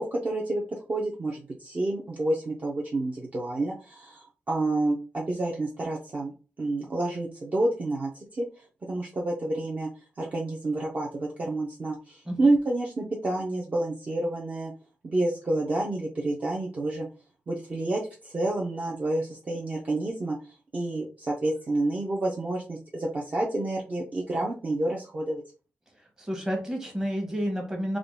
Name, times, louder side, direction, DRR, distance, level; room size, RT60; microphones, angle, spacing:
voice 1, 0.0-6.3 6.6-8.5 8.9-9.9 10.2-14.7 15.0-17.1 17.5-20.4 20.7-25.4, right 2 dB, 35° right, -3 dB, 0.6 m, -29 dB
voice 2, 26.2-28.0, equal, 15° right, 0 dB, 1.0 m, -30 dB
3.6 x 2.2 x 3.7 m, 0.35 s
wide cardioid pair, 180°, 4 cm